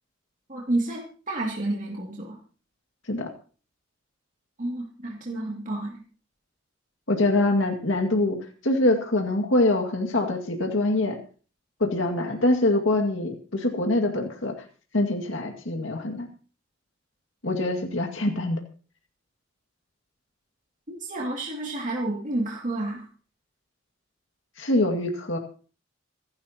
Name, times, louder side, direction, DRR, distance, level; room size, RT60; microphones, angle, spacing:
voice 1, 0.5-2.4 4.6-6.0 21.0-23.0, right 2 dB, 40° right, -2 dB, 2.6 m, -30 dB
voice 2, 7.1-8.4 8.6-11.2 11.8-14.5 14.9-16.3 17.4-18.6 24.6-25.4, left 2 dB, 75° left, 2 dB, 2.2 m, -24 dB
27.5 x 11.0 x 3.0 m, 0.39 s
head